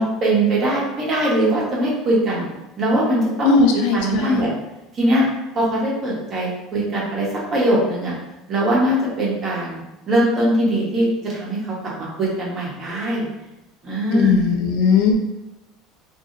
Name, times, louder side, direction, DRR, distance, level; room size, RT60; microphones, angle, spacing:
voice 1, 0.0-2.4 2.8-3.5 3.9-4.5 4.9-5.3 5.5-8.1 8.5-9.8 10.1-11.7 12.2-13.3 13.8-14.5, right 1 dB, 35° right, -5 dB, 1.0 m, -21 dB
voice 2, 3.4-4.4 14.1-15.1, left 5 dB, 75° left, 1 dB, 0.5 m, -18 dB
2.8 x 2.7 x 2.6 m, 0.96 s
supercardioid pair, 135°, 0 cm